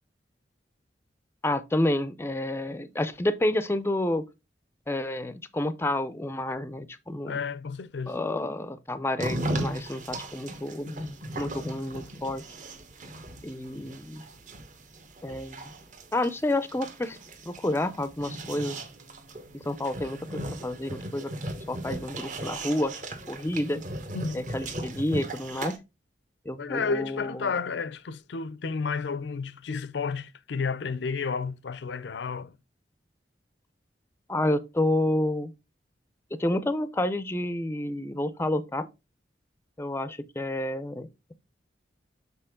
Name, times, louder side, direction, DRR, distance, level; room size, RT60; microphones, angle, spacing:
voice 1, 1.4-4.3 4.9-7.4 8.1-12.4 13.4-14.2 15.2-15.6 16.1-17.2 17.5-18.8 19.5-21.3 21.7-22.9 23.3-23.8 24.3-25.8 26.5-27.5 34.3-35.5 36.4-38.9 39.8-41.3, left 1 dB, 15° left, 0.4 m, -29 dB
voice 2, 7.2-8.2 24.1-24.5 26.6-32.6, left 5 dB, 80° left, 0.5 m, -31 dB
sound 1, 9.2-25.8, right 1 dB, 45° right, 1.1 m, -37 dB
6.7 x 4.1 x 3.6 m
head